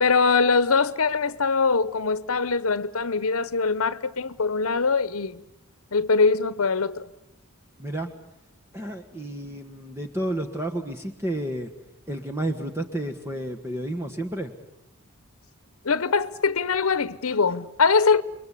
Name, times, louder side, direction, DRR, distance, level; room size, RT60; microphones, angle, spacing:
voice 1, 0.0-5.4 5.9-7.1 15.8-18.2, left 4 dB, 70° left, 1.0 m, -22 dB
voice 2, 7.8-8.1 8.7-11.7 12.1-14.5 17.3-17.4, right 1 dB, 10° right, 1.6 m, -31 dB
29.5 x 22.5 x 8.4 m
head